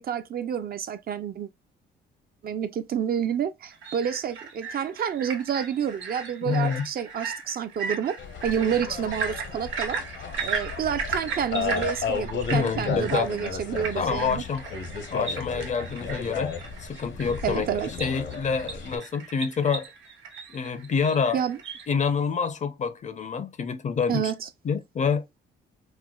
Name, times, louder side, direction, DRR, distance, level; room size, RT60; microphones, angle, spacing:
voice 1, 0.0-1.5 2.4-8.2 8.4-10.0 10.4-14.4 17.4-17.9 21.3-21.6 24.1-24.5, right 8 dB, 50° right, 0.5 m, -29 dB
sound 1, 3.7-21.9, right 5 dB, 70° right, 1.0 m, -36 dB
voice 2, 6.4-6.9 12.5-13.3 13.9-14.7 15.1-16.5 16.8-19.9 20.5-21.4 21.9-24.3 24.6-25.2, left 6 dB, 40° left, 0.5 m, -27 dB
sound 2, 8.2-19.0, left 5 dB, 65° left, 0.8 m, -34 dB
4.3 x 2.1 x 2.3 m
cardioid pair, 90°, 20 cm